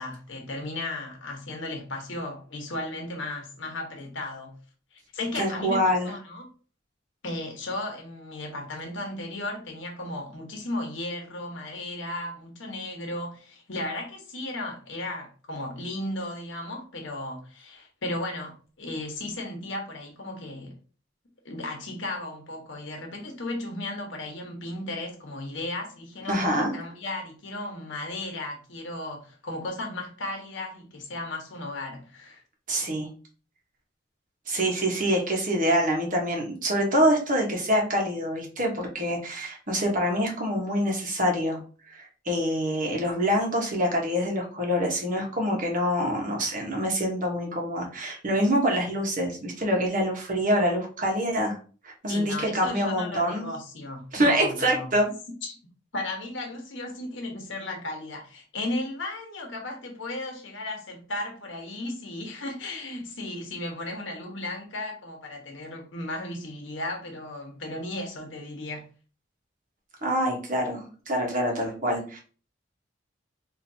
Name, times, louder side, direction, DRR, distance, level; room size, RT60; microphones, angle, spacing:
voice 1, 0.0-4.6 4.9-6.5 7.2-20.7 21.4-32.4 52.1-54.9 55.4-55.6 55.9-68.8, left 2 dB, 75° left, 1.2 m, -35 dB
voice 2, 5.3-6.1 26.3-26.7 32.7-33.1 34.5-41.6 41.9-51.6 51.8-53.5 54.1-55.1 70.0-72.2, equal, 45° right, 1.2 m, -25 dB
4.4 x 2.8 x 2.7 m
head